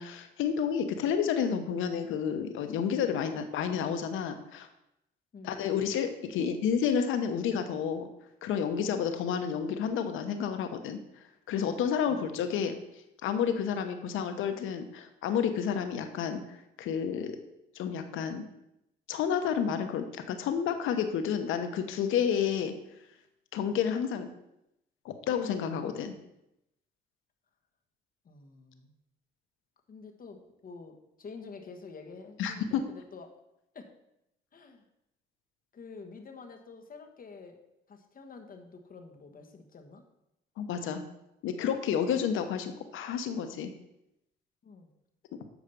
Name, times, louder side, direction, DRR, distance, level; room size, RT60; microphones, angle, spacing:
voice 1, 0.0-4.7 5.4-8.1 8.4-12.8 13.2-17.3 17.7-18.4 19.1-22.8 23.5-24.3 25.0-26.1 32.4-32.8 40.6-41.0 41.4-43.7, left 7 dB, 85° left, 8 dB, 0.9 m, -30 dB
voice 2, 28.2-28.9 29.9-33.3 33.7-33.9 34.5-34.8 35.7-37.6 37.9-40.0 44.6-44.9, left 4 dB, 45° left, 4 dB, 1.4 m, -48 dB
7.0 x 4.9 x 6.8 m, 0.85 s
cardioid pair, 90°, 20 cm